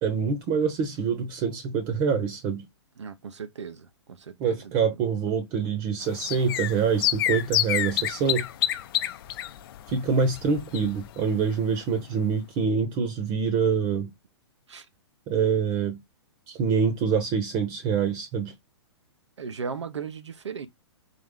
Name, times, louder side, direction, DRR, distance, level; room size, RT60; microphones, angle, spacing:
voice 1, 0.0-2.7 4.4-8.5 9.9-14.1 15.3-16.0 16.5-18.5, right 6 dB, 35° right, 1.0 m, -25 dB
voice 2, 3.0-4.7 14.7-14.9 19.4-20.7, right 6 dB, 85° right, 0.9 m, -37 dB
sound 1, 6.0-11.2 11.5-11.6 11.8-11.9, left 12 dB, 50° left, 0.6 m, -28 dB
3.8 x 3.1 x 3.7 m
hypercardioid pair, 125°, 15 cm